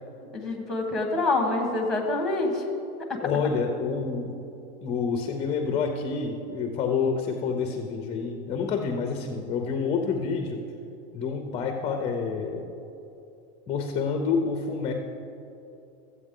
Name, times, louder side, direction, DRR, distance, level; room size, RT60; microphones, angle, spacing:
voice 1, 0.3-2.6 3.1-3.2, left 2 dB, ahead, 1 dB, 1.1 m, -26 dB
voice 2, 3.2-4.4 4.8-10.6 11.1-12.7 13.7-14.9, left 5 dB, 20° left, 4 dB, 0.4 m, -28 dB
13.5 x 8.1 x 3.7 m, 2.8 s
supercardioid pair, 160°, 33 cm